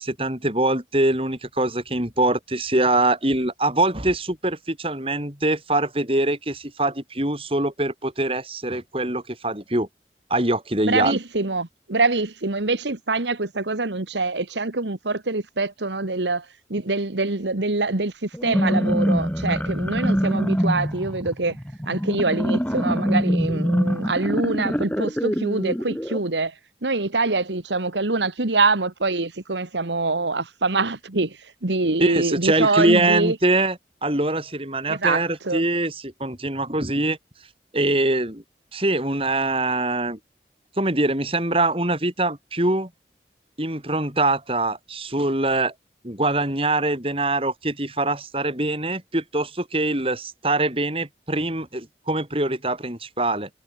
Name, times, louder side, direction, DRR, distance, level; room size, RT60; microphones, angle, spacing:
voice 1, 0.0-9.9 10.3-11.2 32.0-37.2 37.7-38.4 38.7-40.2 40.8-42.9 43.6-45.7 46.0-53.5, right 2 dB, 30° right, 5.4 m, -23 dB
voice 2, 10.8-21.6 21.9-26.5 26.8-33.4 34.9-35.6, right 3 dB, 90° right, 1.8 m, -24 dB
sound 1, 18.3-26.2, equal, 10° left, 6.2 m, -24 dB
head